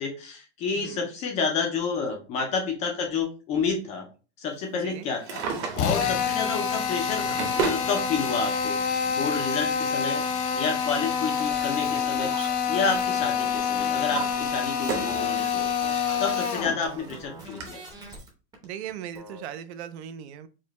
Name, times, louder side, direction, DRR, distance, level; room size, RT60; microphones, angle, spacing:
voice 1, 0.0-4.1 4.4-5.4 5.7-7.3 7.5-8.8 9.1-10.2 10.5-12.3 12.7-15.7 16.2-17.8, left 5 dB, 20° left, 3 dB, 0.3 m, -29 dB
voice 2, 0.7-1.1 4.7-5.1 16.6-17.0 18.6-20.5, right 9 dB, 70° right, 12 dB, 0.5 m, -39 dB
Drawer open or close, 5.1-6.2 6.9-7.9 9.0-9.1 10.8-12.4 12.7-13.0 13.6-15.2 15.7-15.8 16.5-16.6 16.8-16.9 17.6-17.7, right 6 dB, 35° right, 0.9 m, -34 dB
Drill, 5.8-16.8, left 7 dB, 75° left, 1.0 m, -27 dB
sound 1, 11.3-18.3 18.5-18.6 18.9-19.4, right 2 dB, 10° right, 0.6 m, -42 dB
4.8 x 2.1 x 2.9 m, 0.35 s
supercardioid pair, 155°, 35 cm